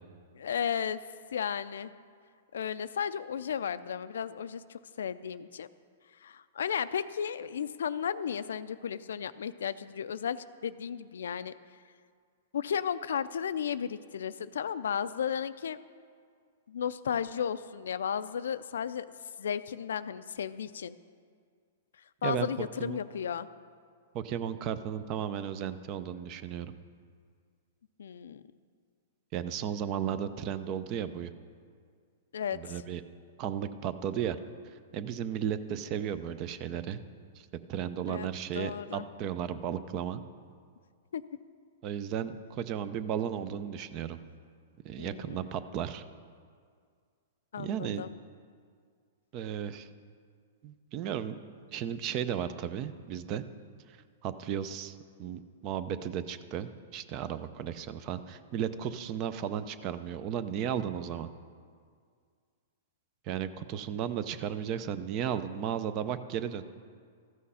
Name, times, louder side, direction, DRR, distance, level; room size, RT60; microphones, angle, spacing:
voice 1, 0.3-1.0 1.3-1.9 2.5-5.7 6.2-11.5 12.5-15.8 16.7-19.1 19.4-21.0 22.2-23.5 28.0-28.4 32.3-32.8 38.1-38.3 38.5-39.1 41.1-41.2 45.0-45.4 47.5-48.1, left 8 dB, 85° left, 14 dB, 0.4 m, -34 dB
voice 2, 22.2-23.0 24.1-26.7 29.3-31.3 32.5-33.0 33.4-34.4 34.6-37.0 37.4-40.2 41.8-44.2 44.8-46.0 47.6-48.0 49.3-49.9 50.6-51.4 51.7-53.4 54.2-61.3 63.3-66.6, right 9 dB, 35° right, 13 dB, 0.5 m, -34 dB
13.5 x 6.4 x 5.6 m, 2.1 s
hypercardioid pair, 145°, 0 cm